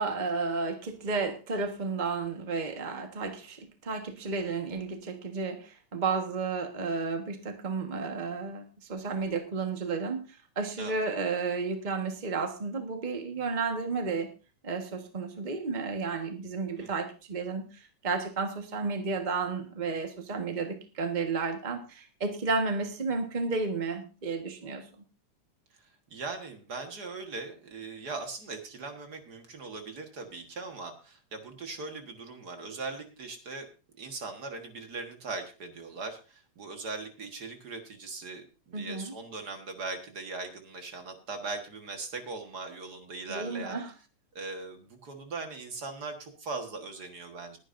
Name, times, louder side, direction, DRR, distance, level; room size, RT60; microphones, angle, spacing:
voice 1, 0.0-8.6 8.9-10.2 10.5-14.3 14.6-17.7 18.0-24.8 38.7-39.1 43.3-43.9, right 4 dB, 65° right, 4 dB, 0.4 m, -32 dB
voice 2, 26.1-33.7 34.0-43.8 44.3-47.6, right 3 dB, 45° right, 5 dB, 1.5 m, -40 dB
20.5 x 10.5 x 2.6 m, 0.33 s
omnidirectional pair, 3.5 m